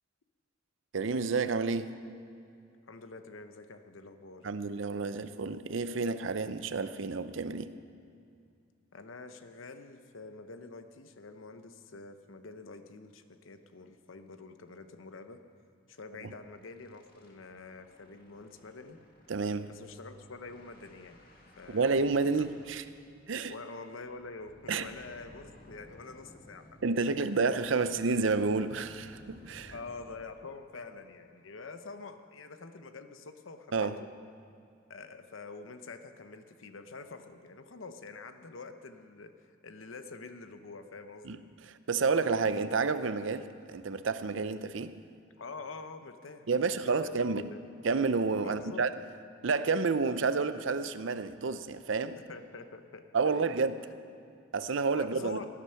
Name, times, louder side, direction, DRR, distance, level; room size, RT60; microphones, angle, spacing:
voice 1, 0.9-2.0 4.4-7.7 16.2-16.3 19.3-19.7 21.7-22.8 23.3-23.5 24.7-24.9 26.8-29.7 33.7-34.0 41.2-41.4 41.7-45.0 46.5-47.5 47.8-48.9 49.4-52.2 53.1-53.8 54.5-55.4, right 4 dB, 70° right, 12 dB, 0.6 m, -30 dB
voice 2, 2.9-4.5 8.9-15.4 15.9-19.0 19.7-21.2 21.6-21.9 22.4-22.5 23.5-26.8 27.7-27.9 29.7-34.1 34.9-41.4 45.4-46.6 46.8-47.6 48.4-48.8 52.3-53.5 54.9-55.5, left 3 dB, 80° left, 8 dB, 0.9 m, -46 dB
sound 1, 13.2-13.3 13.7-13.8 14.1-14.3 14.6-14.7 16.0-29.9, left 1 dB, 50° left, 1.9 m, -57 dB
18.5 x 11.0 x 5.8 m, 2.4 s
head